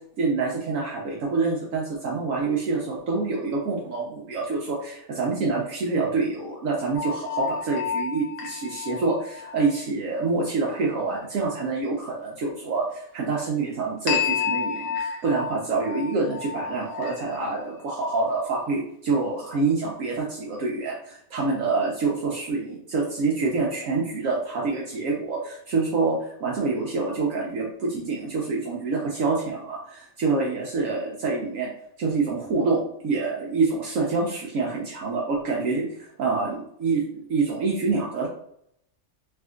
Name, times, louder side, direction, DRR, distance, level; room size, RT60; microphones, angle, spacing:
voice 1, 0.2-31.7 32.0-38.3, right 3 dB, 70° right, -2 dB, 0.9 m, -26 dB
sound 1, 6.9-9.8 14.1-17.6, left 7 dB, 70° left, 1.0 m, -30 dB
3.5 x 2.4 x 2.4 m, 0.71 s
omnidirectional pair, 1.5 m